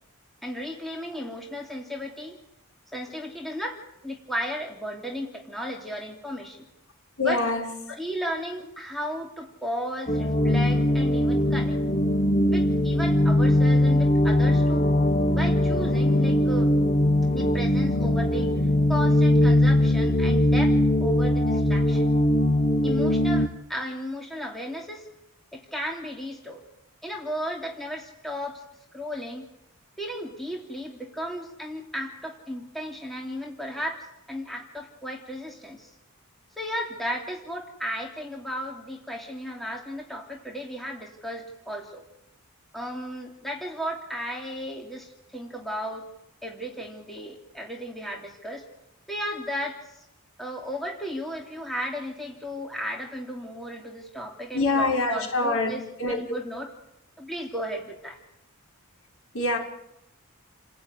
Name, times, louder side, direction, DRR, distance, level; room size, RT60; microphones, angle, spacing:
voice 1, 0.4-2.4 2.9-6.7 7.2-7.4 8.0-11.8 12.5-14.9 15.3-16.7 17.3-18.5 18.9-20.8 21.0-22.1 22.8-25.1 25.5-26.6 27.0-28.6 28.9-29.5 30.0-35.9 36.6-42.0 42.7-46.1 46.4-48.6 49.1-49.8 50.4-55.8 56.1-56.7 57.2-58.2, equal, ahead, 0 dB, 2.9 m, -34 dB
voice 2, 7.2-7.7 54.5-56.2 59.3-59.6, left 2 dB, 65° left, 0 dB, 6.0 m, -25 dB
sound 1, 10.1-23.5, left 1 dB, 30° left, 1.1 m, -21 dB
30.0 x 16.0 x 9.7 m, 0.84 s
head